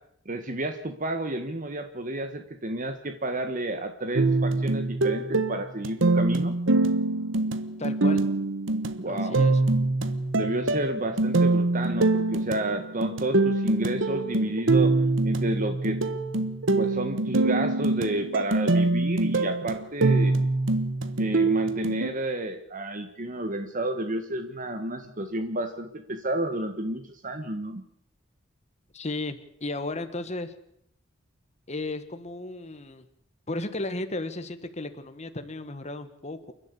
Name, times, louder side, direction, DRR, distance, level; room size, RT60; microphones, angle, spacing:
voice 1, 0.2-6.6 9.0-9.4 10.4-14.9 15.2-16.0 16.8-20.3 21.2-27.8, right 1 dB, 40° right, 8 dB, 1.4 m, -31 dB
sound 1, 4.1-22.1, right 2 dB, 70° right, 1.4 m, -24 dB
voice 2, 7.8-8.2 9.0-9.6 28.9-30.5 31.7-33.0 33.5-36.5, left 2 dB, 35° left, 9 dB, 1.5 m, -34 dB
29.0 x 12.0 x 8.3 m, 0.72 s
head